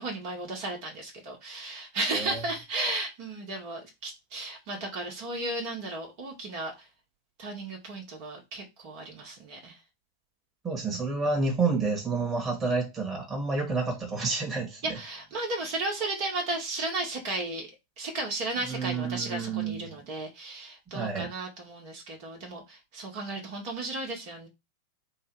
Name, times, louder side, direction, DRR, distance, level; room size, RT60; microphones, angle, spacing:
voice 1, 0.0-6.7 7.4-9.8 14.8-17.7 18.0-24.5, right 2 dB, 50° right, 1.9 m, -34 dB
voice 2, 2.1-2.4 10.6-15.0 18.6-20.0 20.9-21.3, right 4 dB, 20° right, 1.9 m, -29 dB
3.7 x 2.7 x 4.7 m
figure-of-eight pair, 95°, 0 cm